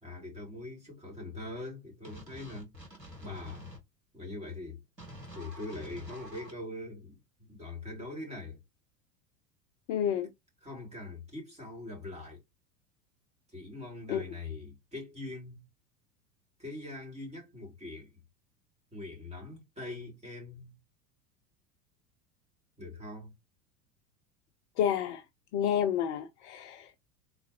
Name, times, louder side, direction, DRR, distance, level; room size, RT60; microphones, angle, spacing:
voice 1, 0.0-2.7 3.2-3.7 4.1-4.8 5.3-8.6 10.6-12.4 13.5-15.6 16.6-18.2 18.9-20.8 22.8-23.3, left 2 dB, 15° right, 2.9 m, -42 dB
sound 1, 2.0-3.8 5.0-6.5, equal, 90° right, 1.8 m, -48 dB
voice 2, 9.9-10.3 14.1-14.2 24.8-25.2 25.5-27.0, left 9 dB, 45° left, 0.7 m, -29 dB
3.9 x 3.9 x 3.0 m
figure-of-eight pair, 85°, 48 cm